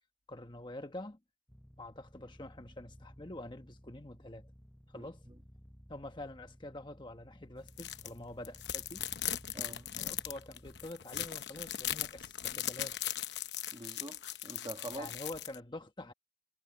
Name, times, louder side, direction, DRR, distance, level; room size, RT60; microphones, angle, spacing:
voice 1, 0.3-1.2 1.8-4.5 4.9-5.2 5.9-9.1 10.0-13.1 14.9-16.1, left 1 dB, 25° left, 1.2 m, -46 dB
sound 1, 1.5-10.9, equal, 5° left, 1.0 m, -57 dB
voice 2, 4.9-5.3 9.5-9.9 13.7-15.1, right 1 dB, 25° right, 1.6 m, -45 dB
sound 2, 7.7-8.1 8.4-15.5, left 12 dB, 65° left, 0.9 m, -39 dB
head